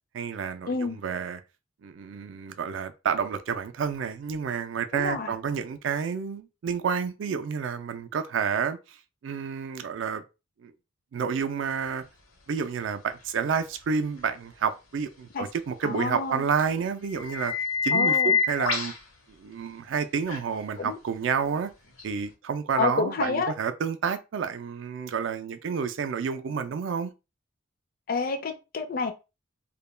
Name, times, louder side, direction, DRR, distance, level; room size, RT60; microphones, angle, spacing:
voice 1, 0.1-1.4 1.8-9.0 9.2-10.2 10.6-10.7 11.1-12.0 12.5-17.5 17.8-18.9 19.3-21.7 22.0-27.1, right 6 dB, 65° right, 0.3 m, -29 dB
voice 2, 0.7-1.0 4.9-5.3 15.3-15.5 15.8-16.4 17.9-18.4 20.8-21.0 22.8-23.5 28.1-29.1, left 4 dB, 45° left, 0.4 m, -29 dB
sound 1, 12.6-12.7 16.6-16.7 17.1-19.0 20.3-20.4 22.0-22.1, left 5 dB, 85° left, 0.8 m, -26 dB
2.2 x 2.1 x 3.1 m
head